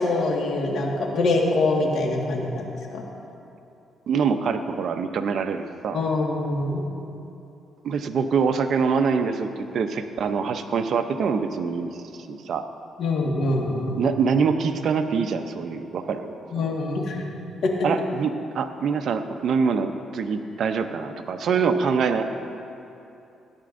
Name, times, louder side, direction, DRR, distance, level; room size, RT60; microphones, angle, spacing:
voice 1, 0.0-2.6 2.9-3.0 5.9-6.8 13.0-14.0 16.5-17.2 17.6-17.7, left 2 dB, 65° left, -1 dB, 1.6 m, -24 dB
voice 2, 4.1-6.0 7.8-12.7 14.0-16.7 17.8-22.2, right 5 dB, 60° right, 7 dB, 0.5 m, -25 dB
16.5 x 9.6 x 2.6 m, 2.8 s
cardioid pair, 90°, 0 cm